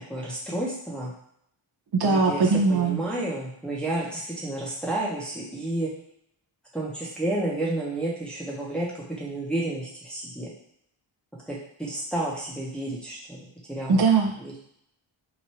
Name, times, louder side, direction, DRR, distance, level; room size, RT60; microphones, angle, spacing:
voice 1, 0.1-1.1 2.0-5.9 6.7-10.5 11.5-14.0 14.4-14.6, right 1 dB, ahead, -5 dB, 0.8 m, -31 dB
voice 2, 1.9-3.0 13.9-14.3, right 4 dB, 50° right, 0 dB, 0.7 m, -20 dB
3.1 x 2.5 x 4.3 m, 0.69 s
wide cardioid pair, 140°, 48 cm